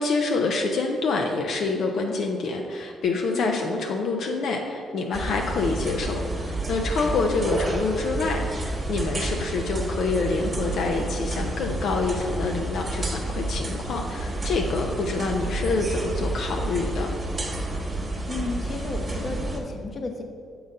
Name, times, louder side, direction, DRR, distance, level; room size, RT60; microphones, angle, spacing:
voice 1, 0.0-17.1, left 3 dB, 70° left, 2 dB, 0.5 m, -27 dB
sound 1, 5.1-19.6, right 2 dB, 25° right, 1.2 m, -30 dB
Bass guitar, 10.4-14.4, equal, 50° right, 0.9 m, -44 dB
voice 2, 18.3-20.2, left 3 dB, 40° left, 4 dB, 0.8 m, -32 dB
6.8 x 3.9 x 5.3 m, 2.3 s
cardioid pair, 90°, 0 cm